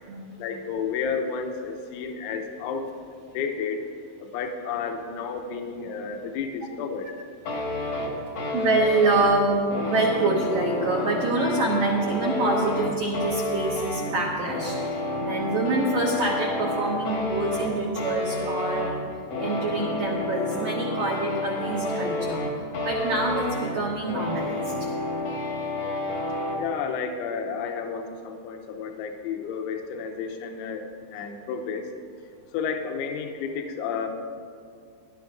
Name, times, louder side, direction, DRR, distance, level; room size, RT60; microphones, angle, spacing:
voice 1, 0.4-2.9 3.3-3.9 4.2-7.1 26.6-30.9 31.1-31.8 32.5-34.1, left 6 dB, 80° left, 4 dB, 3.0 m, -31 dB
sound 1, 7.4-26.6, left 1 dB, 65° left, 1.5 m, -30 dB
voice 2, 8.5-9.6 9.8-19.0 19.4-22.4 22.8-24.9, right 2 dB, 80° right, -3 dB, 1.9 m, -26 dB
21.0 x 11.5 x 2.6 m, 2.2 s
omnidirectional pair, 5.7 m